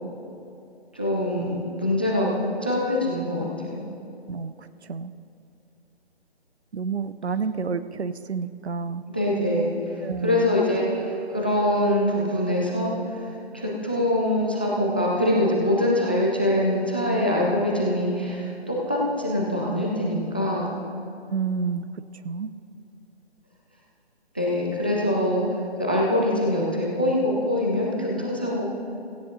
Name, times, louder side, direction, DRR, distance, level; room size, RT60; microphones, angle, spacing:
voice 1, 0.9-3.8 9.1-9.7 10.2-13.2 13.5-20.7 24.3-28.7, left 1 dB, 10° left, -2 dB, 0.4 m, -24 dB
voice 2, 4.3-5.1 6.7-9.0 10.0-10.6 21.3-21.8 22.2-22.5, right 5 dB, 80° right, 13 dB, 0.7 m, -29 dB
17.0 x 15.0 x 2.7 m, 2.7 s
figure-of-eight pair, 150°, 32 cm